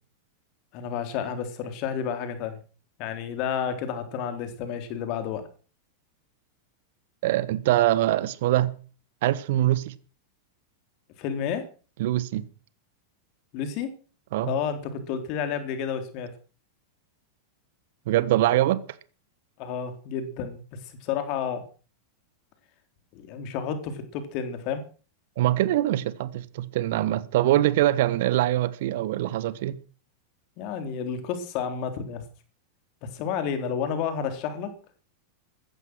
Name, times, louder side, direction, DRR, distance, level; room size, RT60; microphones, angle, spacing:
voice 1, 0.7-2.6 3.0-5.4 11.2-11.7 13.5-13.9 14.4-16.3 19.6-20.6 20.8-21.7 23.1-24.8 30.6-32.2 33.0-34.7, left 7 dB, 40° left, 3.6 m, -31 dB
voice 2, 7.2-8.7 9.2-9.9 12.0-12.4 14.3-14.5 18.1-18.8 25.4-29.8, right 14 dB, 55° right, 1.2 m, -23 dB
15.5 x 14.0 x 6.2 m
figure-of-eight pair, 90°, 0 cm